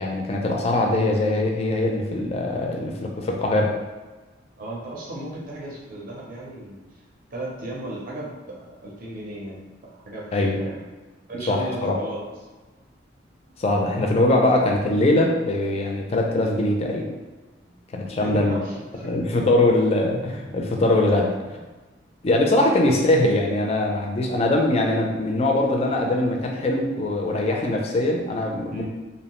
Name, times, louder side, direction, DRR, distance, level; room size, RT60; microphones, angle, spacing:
voice 1, 0.0-3.7 10.3-10.6 11.5-12.0 13.6-17.1 17.9-18.6 19.0-21.3 22.2-28.8, left 2 dB, 30° left, 0 dB, 0.3 m, -22 dB
voice 2, 4.6-6.8 7.3-9.6 9.9-10.8 11.3-12.2 17.6-17.7 18.1-19.1 21.1-21.2 21.5-21.6 28.7-28.8, right 1 dB, 45° right, -4 dB, 0.6 m, -35 dB
2.7 x 2.0 x 2.9 m, 1.2 s
head